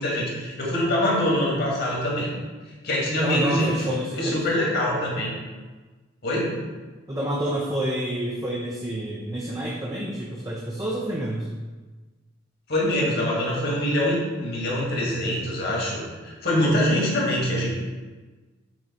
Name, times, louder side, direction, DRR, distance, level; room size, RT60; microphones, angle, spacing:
voice 1, 0.0-2.3 2.8-3.8 4.2-5.3 6.2-6.6 12.7-17.7, left 1 dB, 55° left, -4 dB, 1.7 m, -24 dB
voice 2, 3.2-4.4 7.1-11.5, right 1 dB, 15° right, -3 dB, 0.5 m, -28 dB
6.3 x 3.7 x 4.2 m, 1.3 s
head